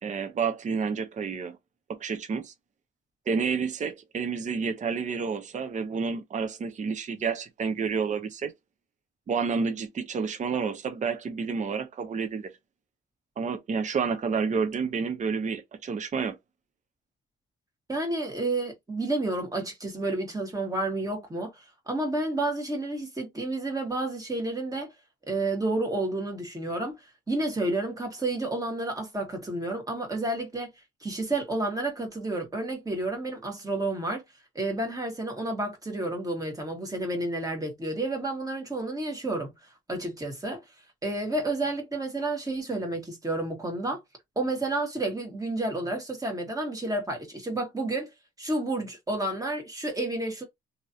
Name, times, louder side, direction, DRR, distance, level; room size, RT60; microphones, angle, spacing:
voice 1, 0.0-1.6 1.9-2.5 3.3-8.5 9.3-12.5 13.4-16.4, right 5 dB, 40° right, 0.7 m, -29 dB
voice 2, 17.9-24.9 25.3-27.0 27.3-30.7 31.0-34.2 34.5-39.5 39.9-40.6 41.0-44.0 44.3-48.1 48.4-50.4, right 2 dB, 15° right, 1.6 m, -30 dB
2.9 x 2.8 x 2.7 m
cardioid pair, 90°, 20 cm